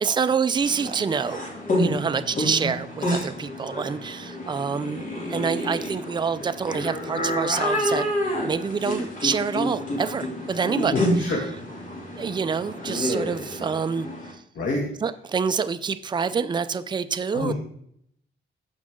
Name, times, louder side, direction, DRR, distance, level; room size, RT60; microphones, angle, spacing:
voice 1, 0.0-1.5 1.8-8.1 8.4-11.1 12.2-14.1 15.0-17.5, right 6 dB, 20° right, 11 dB, 0.4 m, -27 dB
sound 1, 0.6-14.3, equal, 40° left, 2.8 m, -29 dB
voice 2, 10.9-11.4 14.6-14.8 17.3-17.5, left 2 dB, 65° left, -2 dB, 2.2 m, -26 dB
15.0 x 5.0 x 3.7 m, 0.68 s
wide cardioid pair, 140°, 20 cm